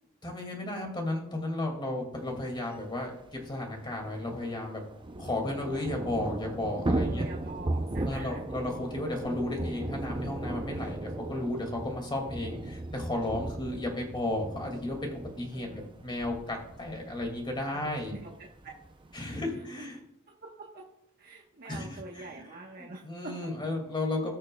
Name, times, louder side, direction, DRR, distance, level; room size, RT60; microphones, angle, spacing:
voice 1, 0.2-4.8 5.2-7.3 7.7-18.1 19.1-20.0 21.6-22.5 22.8-24.4, left 1 dB, 20° left, 2 dB, 2.2 m, -34 dB
Thunder / Rain, 2.6-2.7 2.9-3.0 3.3-19.2, right 2 dB, 20° right, 0.5 m, -37 dB
voice 2, 7.1-8.5 13.7-14.0 15.5-15.9 17.7-18.7 19.8-19.9 20.3-20.8 21.2-23.5, right 3 dB, 45° right, -1 dB, 1.1 m, -45 dB
19.0 x 6.4 x 2.3 m, 0.85 s
head